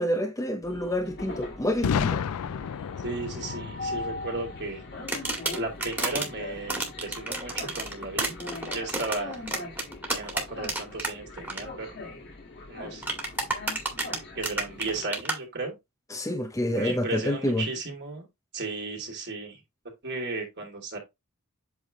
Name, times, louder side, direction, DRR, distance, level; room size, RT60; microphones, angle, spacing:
voice 1, 0.0-2.2 16.1-17.7, left 1 dB, 15° left, 0.8 m, -28 dB
Train, 0.6-15.0, left 2 dB, 50° left, 1.9 m, -41 dB
Boom, 1.8-5.7, left 7 dB, 75° left, 0.4 m, -31 dB
voice 2, 3.0-4.8 5.6-8.4 8.7-9.4 10.1-12.0 12.7-13.0 13.9-15.7 16.7-18.3 18.5-19.6 20.0-21.0, right 3 dB, 50° right, 2.9 m, -35 dB
sound 1, 5.1-6.3 6.7-11.1 11.4-11.6 13.0-15.4, right 2 dB, 10° right, 2.0 m, -30 dB
8.2 x 3.5 x 3.7 m
head